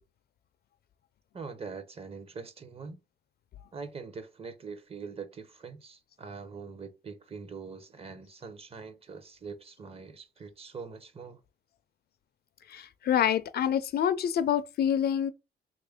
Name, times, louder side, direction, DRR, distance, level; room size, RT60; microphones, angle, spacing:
voice 1, 1.3-3.0 3.7-11.4, right 5 dB, 30° right, 0.6 m, -43 dB
voice 2, 12.7-15.3, left 9 dB, 55° left, 0.4 m, -27 dB
3.1 x 2.5 x 3.4 m
cardioid pair, 90°, 20 cm